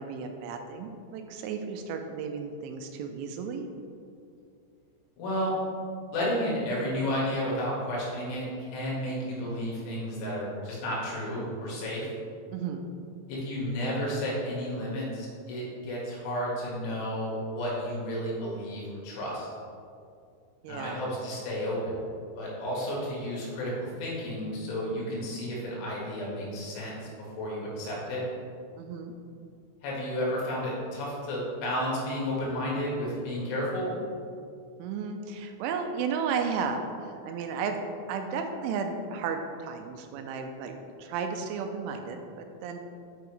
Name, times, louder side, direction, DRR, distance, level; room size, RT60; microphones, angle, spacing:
voice 1, 0.0-3.7 12.5-12.9 20.6-21.1 28.8-29.1 34.8-37.8 38.1-42.8, right 5 dB, 90° right, 5 dB, 3.0 m, -34 dB
voice 2, 5.2-5.5 6.1-12.1 13.3-19.5 20.6-22.0 22.4-27.0 27.4-28.2 29.8-34.0, equal, 90° left, -5 dB, 4.3 m, -32 dB
9.1 x 5.7 x 3.2 m, 2.3 s
omnidirectional pair, 5.4 m